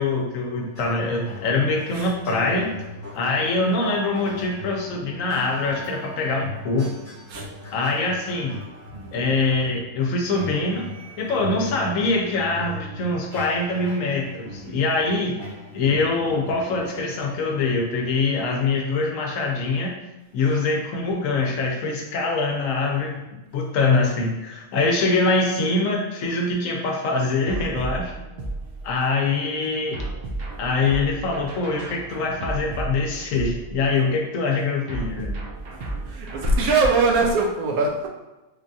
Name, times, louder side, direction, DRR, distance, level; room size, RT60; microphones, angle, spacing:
voice 1, 0.0-2.7 3.1-6.9 7.7-8.5 9.1-10.9 11.2-15.4 15.7-19.9 20.3-23.2 23.5-28.1 28.8-30.0 30.6-35.4, left 3 dB, 70° left, 0 dB, 0.9 m, -24 dB
sound 1, 0.5-19.3, equal, 35° left, 1.2 m, -39 dB
sound 2, 27.5-29.2 29.9-34.1 34.9-37.4, right 2 dB, 70° right, 0.5 m, -33 dB
voice 2, 36.1-38.1, right 3 dB, 85° right, 1 dB, 1.1 m, -21 dB
3.3 x 2.3 x 2.6 m, 1.0 s
omnidirectional pair, 1.5 m